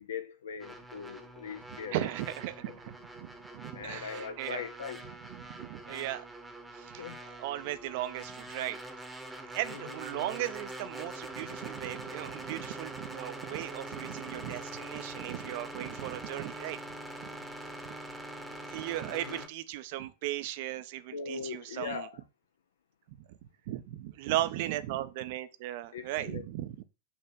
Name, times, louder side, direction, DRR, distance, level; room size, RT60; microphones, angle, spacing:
voice 1, 0.0-1.9 3.7-5.0 7.0-7.2 9.7-9.8 10.1-10.3 19.1-19.4 21.1-22.2 25.9-26.5, left 6 dB, 65° left, 0.6 m, -40 dB
sound 1, 0.6-19.5, right 1 dB, 5° right, 1.0 m, -44 dB
voice 2, 1.7-4.6 5.0-6.2 6.7-7.1 7.4-8.8 9.5-16.8 17.9-18.0 18.7-22.1 23.1-23.4 23.7-26.8, right 14 dB, 50° right, 0.6 m, -37 dB
5.7 x 3.2 x 5.4 m
figure-of-eight pair, 90°, 0 cm